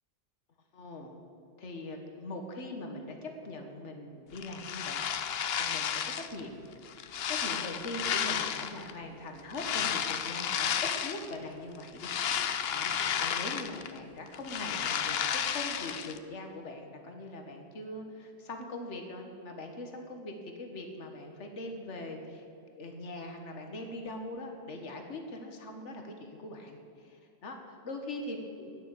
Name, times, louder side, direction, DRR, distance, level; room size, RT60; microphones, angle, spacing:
voice 1, 0.7-1.1 1.6-6.6 7.3-22.4 22.8-28.7, left 2 dB, 75° left, 3 dB, 1.8 m, -42 dB
sound 1, 4.4-6.4 6.8-8.9 9.5-11.3 11.7-14.0 14.3-16.2, left 8 dB, 60° left, 0.9 m, -32 dB
11.5 x 10.0 x 8.4 m, 2.6 s
omnidirectional pair, 1.2 m